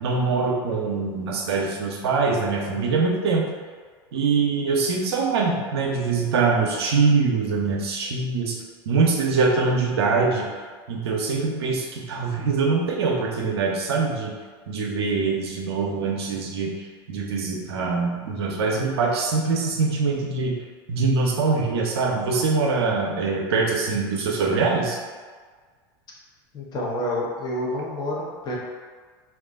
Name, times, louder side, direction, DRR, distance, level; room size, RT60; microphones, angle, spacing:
voice 1, 0.0-3.5 4.1-8.6 8.9-10.5 10.9-14.3 14.7-16.7 17.1-20.5 20.9-25.0, right 4 dB, 80° right, 0 dB, 0.6 m, -23 dB
voice 2, 26.5-28.6, left 1 dB, 30° left, -5 dB, 0.8 m, -28 dB
2.3 x 2.1 x 3.5 m, 1.5 s
hypercardioid pair, 100°, 13 cm